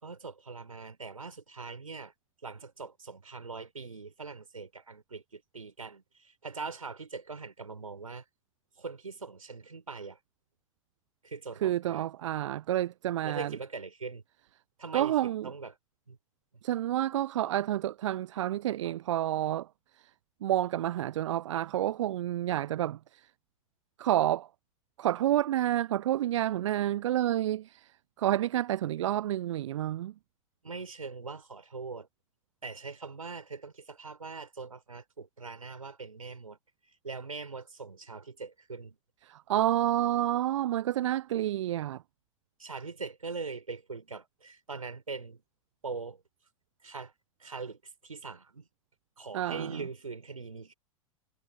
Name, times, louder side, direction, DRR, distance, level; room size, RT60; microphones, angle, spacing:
voice 1, 0.0-2.1 2.4-8.2 8.8-10.2 11.2-12.1 13.2-14.2 14.8-15.7 16.1-16.2 30.6-32.1 32.6-36.6 37.0-39.0 42.6-45.4 45.8-46.2 46.8-47.1 47.4-48.7 49.2-50.7, right 4 dB, 80° right, 4.6 m, -42 dB
voice 2, 11.6-13.6 14.9-15.5 16.6-19.7 20.4-23.3 24.0-24.5 25.0-30.1 39.2-42.0 49.3-49.9, right 13 dB, 60° right, 0.5 m, -29 dB
figure-of-eight pair, 90°, 17 cm